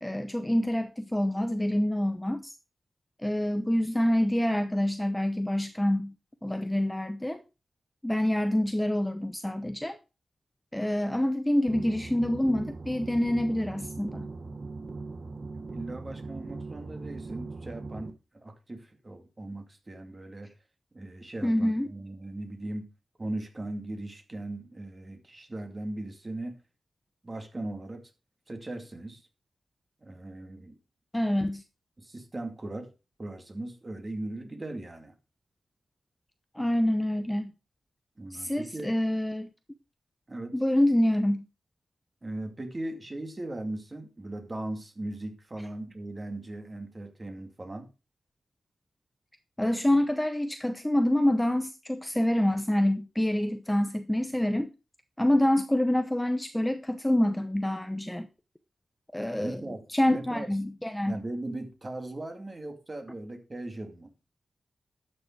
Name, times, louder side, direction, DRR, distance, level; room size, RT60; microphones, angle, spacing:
voice 1, 0.0-2.5 3.2-6.1 6.4-7.4 8.0-10.0 10.7-14.3 21.4-21.9 31.1-31.6 36.5-37.5 38.3-39.5 40.5-41.4 49.6-54.7 55.2-58.3 59.1-59.6 59.9-61.1, left 1 dB, 10° left, 0.8 m, -26 dB
sound 1, 11.7-18.1, right 3 dB, 45° right, 1.2 m, -40 dB
voice 2, 15.7-20.5 20.9-22.9 23.2-26.6 27.2-28.1 28.5-29.2 30.0-30.8 32.0-32.9 33.2-35.1 38.2-38.9 40.3-40.6 42.2-47.9 59.4-60.5 61.0-64.1, right 2 dB, 30° right, 2.3 m, -38 dB
12.0 x 6.5 x 4.6 m
wide cardioid pair, 100°, 0 cm